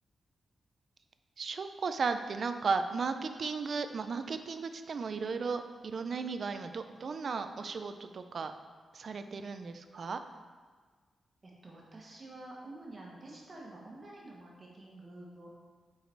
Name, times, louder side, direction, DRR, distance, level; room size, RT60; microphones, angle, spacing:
voice 1, 1.4-8.5 8.9-10.2, right 4 dB, 45° right, 9 dB, 0.4 m, -35 dB
voice 2, 11.4-15.5, right 2 dB, 30° right, -3 dB, 1.3 m, -49 dB
6.5 x 4.8 x 4.5 m, 1.5 s
wide cardioid pair, 165°, 0 cm